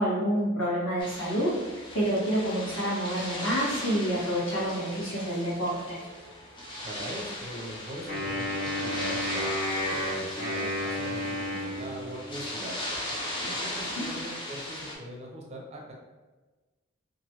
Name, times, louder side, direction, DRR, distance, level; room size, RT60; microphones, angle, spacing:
voice 1, 0.0-6.0 13.9-14.0, equal, 70° left, -8 dB, 1.4 m, -28 dB
sound 1, 1.0-15.0, left 1 dB, 25° left, 0.5 m, -38 dB
voice 2, 6.8-12.9 13.5-15.9, equal, 30° right, -1 dB, 0.5 m, -41 dB
Wind instrument woodwind instrument, 8.1-12.5, left 1 dB, 40° left, 1.1 m, -32 dB
3.0 x 2.5 x 2.8 m, 1.2 s
head